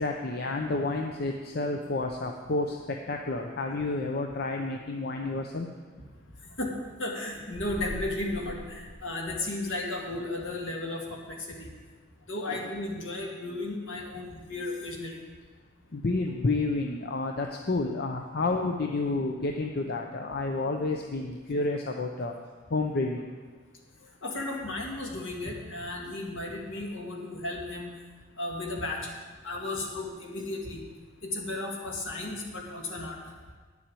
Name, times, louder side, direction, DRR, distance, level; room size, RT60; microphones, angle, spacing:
voice 1, 0.0-5.7 12.5-12.6 15.9-22.3 22.7-23.3, left 3 dB, 50° left, 3 dB, 0.7 m, -30 dB
voice 2, 6.6-11.7 12.3-15.2 24.0-27.9 28.4-29.1 29.4-30.8 31.2-33.3, left 2 dB, 70° left, 0 dB, 2.1 m, -34 dB
sound 1, 7.4-9.8, right 1 dB, 20° right, 0.7 m, -42 dB
10.0 x 7.3 x 7.6 m, 1.4 s
head